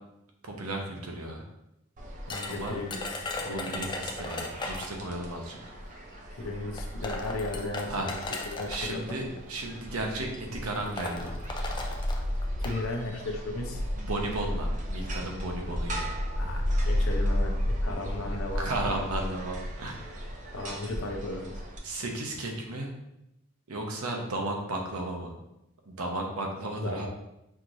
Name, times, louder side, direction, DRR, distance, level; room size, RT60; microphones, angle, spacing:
voice 1, 0.4-1.5 2.5-2.8 3.4-5.6 7.9-8.1 8.7-11.3 13.9-16.2 18.2-18.3 18.6-20.2 21.8-22.9 23.7-25.3 25.9-27.1, right 2 dB, 85° right, 1 dB, 0.8 m, -34 dB
sound 1, 2.0-21.8, equal, 35° right, 0.6 m, -34 dB
voice 2, 2.3-3.8 6.4-8.2 8.4-9.2 12.6-13.8 16.3-18.7 20.5-21.6 26.8-27.1, left 2 dB, 65° left, 3 dB, 0.7 m, -36 dB
sound 2, 2.3-5.0 6.1-6.2 6.8-8.9 9.8-10.1 10.3-10.4 10.7-12.8, left 2 dB, 20° left, 0.4 m, -37 dB
5.7 x 3.0 x 2.6 m, 0.86 s
head